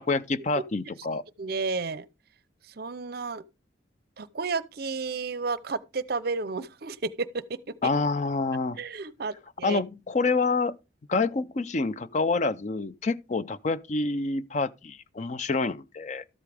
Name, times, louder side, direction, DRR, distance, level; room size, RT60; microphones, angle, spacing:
voice 1, 0.0-1.2 7.8-8.8 9.6-10.8 11.1-16.2, left 3 dB, 35° left, 0.4 m, -27 dB
voice 2, 1.4-2.1 2.7-3.4 4.2-7.7 8.8-9.8, right 4 dB, 50° right, 0.7 m, -32 dB
13.0 x 8.2 x 3.4 m
head